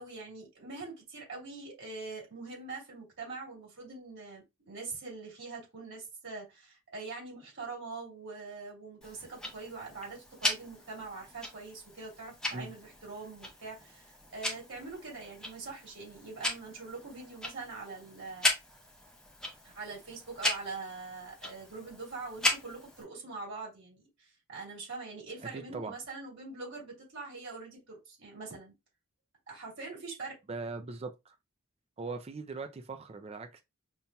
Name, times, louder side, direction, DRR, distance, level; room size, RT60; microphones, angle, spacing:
voice 1, 0.0-18.5 19.6-28.7 29.5-30.4, right 3 dB, 60° right, 2.6 m, -43 dB
Tick-tock, 9.0-23.0, left 1 dB, 5° left, 0.7 m, -37 dB
voice 2, 25.5-25.9 30.5-31.3 32.0-33.6, right 3 dB, 30° right, 0.4 m, -40 dB
5.3 x 2.8 x 2.2 m
head